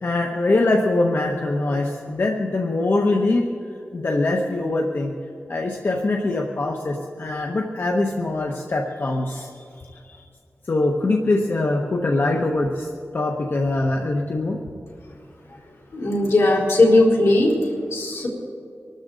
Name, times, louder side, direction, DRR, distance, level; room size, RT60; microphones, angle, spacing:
voice 1, 0.0-3.5 3.9-5.1 5.5-9.6 9.9-10.2 10.7-14.6, left 2 dB, 55° left, 1 dB, 1.1 m, -23 dB
voice 2, 15.9-17.5 17.9-18.3, left 2 dB, 80° left, -4 dB, 4.0 m, -17 dB
24.5 x 13.0 x 3.9 m, 2.4 s
wide cardioid pair, 115°, 5 cm